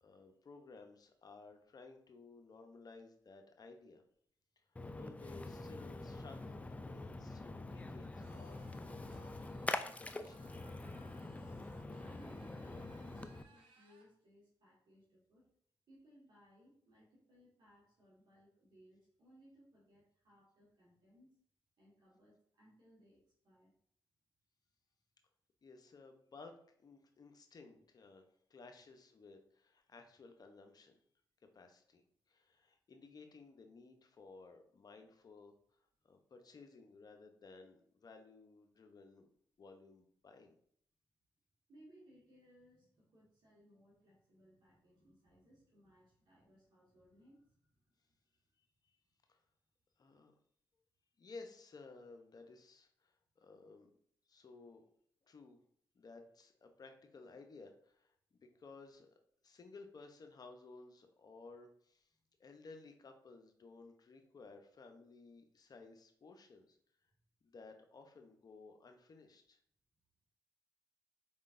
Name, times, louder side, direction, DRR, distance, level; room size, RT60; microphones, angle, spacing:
voice 1, 0.0-4.0 5.0-10.5 25.6-28.2 28.5-31.0 31.5-35.5 36.0-39.3 39.6-40.6 48.6-49.0 49.3-49.4 50.0-50.3 51.2-53.9 54.3-54.8 55.2-55.6 55.9-58.1 58.5-59.1 59.4-62.1 62.4-66.8 67.4-69.6, left 3 dB, 45° left, 5 dB, 0.7 m, -57 dB
Splash splatter, 4.8-13.4, left 2 dB, 15° left, 0.4 m, -45 dB
sound 1, 8.2-14.1, right 2 dB, 75° right, 0.8 m, -66 dB
voice 2, 12.0-15.5 15.9-21.4 21.8-23.7 27.7-27.8 41.7-48.2, equal, 60° right, -5 dB, 1.5 m, -65 dB
4.4 x 3.6 x 2.5 m, 0.64 s
supercardioid pair, 55°, 9 cm